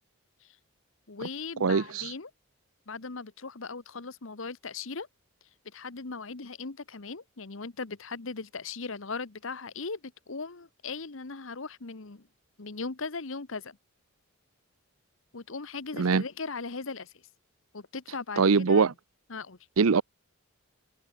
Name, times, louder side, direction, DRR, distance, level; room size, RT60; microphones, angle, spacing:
voice 1, 1.1-2.3 2.9-5.1 5.7-10.0 10.3-12.2 12.6-13.8 15.3-17.1 17.7-18.9 19.3-19.6, left 4 dB, 65° left, 1.1 m, -38 dB
voice 2, 1.6-2.1 16.0-16.2 18.4-18.9 19.8-20.0, right 5 dB, 80° right, 0.6 m, -22 dB
head